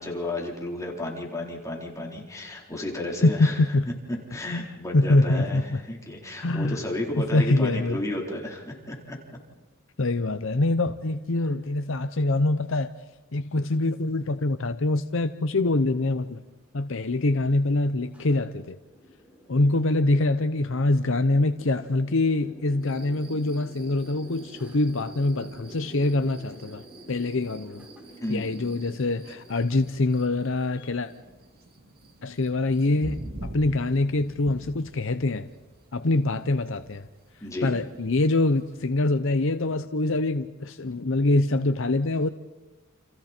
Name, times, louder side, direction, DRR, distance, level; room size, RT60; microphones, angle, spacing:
voice 1, 0.0-3.6 4.3-9.4 28.2-28.6 37.4-37.8, left 1 dB, 15° left, 4.0 m, -33 dB
voice 2, 3.2-3.9 4.5-4.7 4.9-5.8 6.4-6.8 7.2-8.0 10.0-12.9 13.3-16.4 16.7-18.8 19.5-27.9 28.3-31.1 32.2-35.5 35.9-37.1 37.6-42.3, left 2 dB, 65° left, 0.8 m, -24 dB
sound 1, 16.0-30.9, equal, 5° right, 4.8 m, -49 dB
sound 2, 22.8-38.9, right 1 dB, 45° right, 2.8 m, -47 dB
30.0 x 28.5 x 4.5 m
head